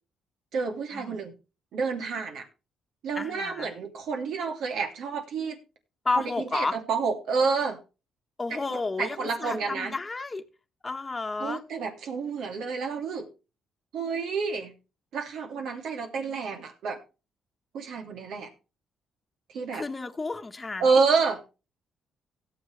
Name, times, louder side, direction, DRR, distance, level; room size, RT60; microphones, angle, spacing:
voice 1, 0.5-1.3 1.7-2.4 3.0-5.6 6.2-7.8 8.5-9.9 11.4-13.3 13.9-14.7 15.1-17.0 17.7-18.5 19.5-19.8 20.8-21.4, right 5 dB, 75° right, 2.9 m, -29 dB
voice 2, 3.1-3.7 6.0-6.8 8.4-10.4 10.8-11.6 19.7-20.9, left 3 dB, 25° left, 1.2 m, -31 dB
17.5 x 7.4 x 3.3 m
cardioid pair, 90°, 0 cm